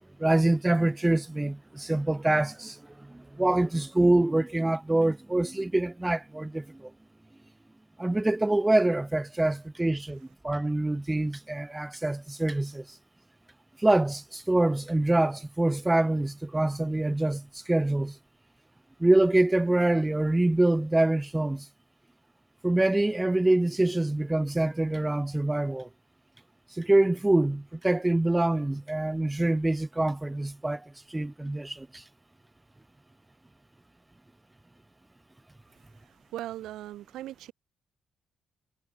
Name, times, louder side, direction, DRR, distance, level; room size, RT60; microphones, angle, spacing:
voice 1, 0.2-6.9 8.0-12.8 13.8-18.2 19.0-21.7 22.6-25.9 26.8-30.8 31.1-32.0, right 2 dB, 10° right, 0.7 m, -25 dB
voice 2, 36.1-37.5, right 14 dB, 85° right, 1.4 m, -39 dB
cardioid pair, 90°, 0 cm